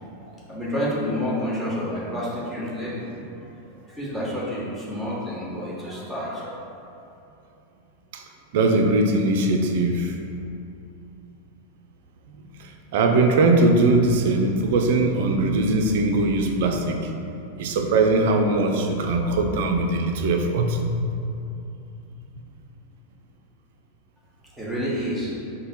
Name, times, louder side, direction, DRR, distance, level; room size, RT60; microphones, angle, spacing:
voice 1, 0.0-3.5 3.9-6.5 24.5-25.3, equal, ahead, -7 dB, 0.9 m, -29 dB
voice 2, 8.5-10.1 12.9-17.0 17.6-21.1, right 2 dB, 55° right, 4 dB, 0.3 m, -20 dB
3.2 x 2.1 x 4.1 m, 2.8 s
figure-of-eight pair, 90°, 0 cm